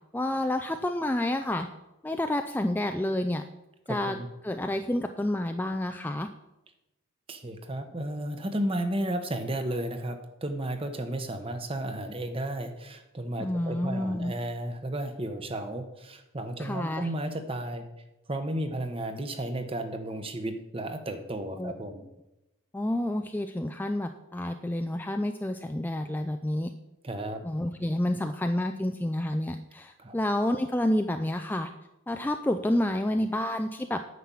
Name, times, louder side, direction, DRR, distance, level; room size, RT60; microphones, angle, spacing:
voice 1, 0.1-1.7 2.0-3.4 3.9-4.2 4.4-6.3 13.4-14.3 16.6-17.1 21.6-21.7 22.7-26.7 27.4-31.7 32.1-34.1, left 1 dB, 10° left, 6 dB, 0.3 m, -29 dB
voice 2, 3.9-4.3 7.3-17.8 18.3-22.0 27.0-27.4 30.0-30.1, right 1 dB, 25° right, 7 dB, 1.0 m, -33 dB
9.4 x 6.0 x 8.4 m, 0.95 s
head